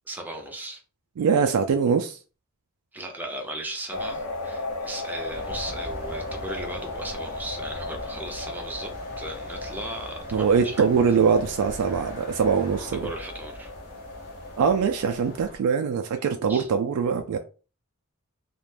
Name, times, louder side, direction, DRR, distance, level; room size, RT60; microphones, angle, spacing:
voice 1, 0.1-0.8 2.9-10.8 12.9-13.7 16.5-16.7, right 1 dB, 10° right, 0.5 m, -37 dB
voice 2, 1.2-2.2 10.3-13.0 14.6-17.4, right 6 dB, 85° right, 0.3 m, -22 dB
sound 1, 3.9-15.5, left 2 dB, 90° left, 0.6 m, -36 dB
sound 2, 5.3-15.6, equal, 40° left, 0.9 m, -42 dB
2.4 x 2.1 x 3.2 m
head